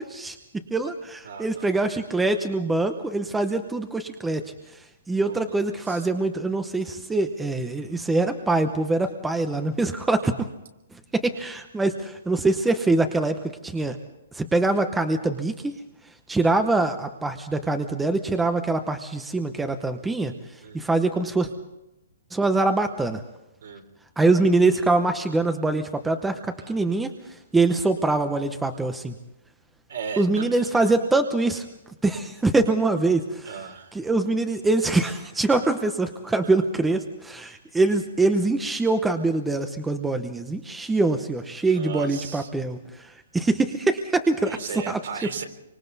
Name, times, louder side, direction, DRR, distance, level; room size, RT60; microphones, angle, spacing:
voice 1, 0.7-4.4 5.1-10.3 11.1-13.4 13.6-14.0 14.3-15.7 16.3-20.3 20.7-21.5 22.3-23.2 24.2-26.4 26.7-27.1 27.5-29.1 30.2-31.6 32.0-33.5 33.9-42.8 43.3-44.6 44.9-45.0, right 2 dB, 5° right, 8 dB, 0.8 m, -23 dB
voice 2, 1.2-1.8 5.2-6.1 20.6-20.8 23.6-23.8 26.6-26.8 29.9-30.9 33.5-34.0 41.7-42.5 44.5-45.4, right 6 dB, 65° right, 5 dB, 3.8 m, -37 dB
27.0 x 25.0 x 4.1 m, 0.92 s
hypercardioid pair, 170°, 0 cm